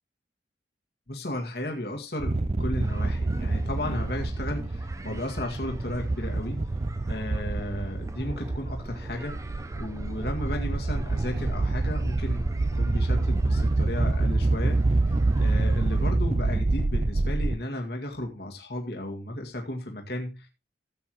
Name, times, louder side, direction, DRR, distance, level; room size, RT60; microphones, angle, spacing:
voice 1, 1.1-6.7 7.0-20.5, left 1 dB, 65° left, 1 dB, 2.1 m, -34 dB
sound 1, 2.2-17.6, right 2 dB, 35° right, 0.5 m, -27 dB
sound 2, 2.8-16.1, right 1 dB, 15° right, 0.9 m, -46 dB
14.5 x 8.4 x 3.1 m, 0.25 s
head